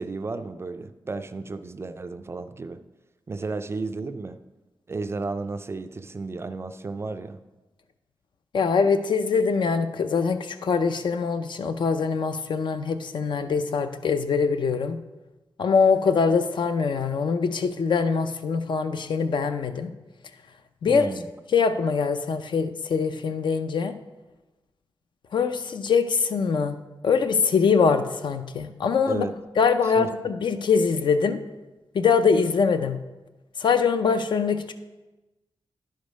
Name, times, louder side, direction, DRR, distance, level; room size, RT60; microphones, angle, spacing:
voice 1, 0.0-2.8 3.3-4.4 4.9-7.4 20.9-21.3 29.1-29.3 29.8-30.1, right 3 dB, 30° right, 10 dB, 0.3 m, -33 dB
voice 2, 8.5-15.0 15.6-19.9 20.8-21.1 21.5-23.9 25.3-26.8 27.0-29.2 29.6-31.4 31.9-33.0 33.6-34.7, left 5 dB, 60° left, 9 dB, 0.5 m, -23 dB
10.5 x 5.2 x 5.2 m, 1.1 s
wide cardioid pair, 160°, 9 cm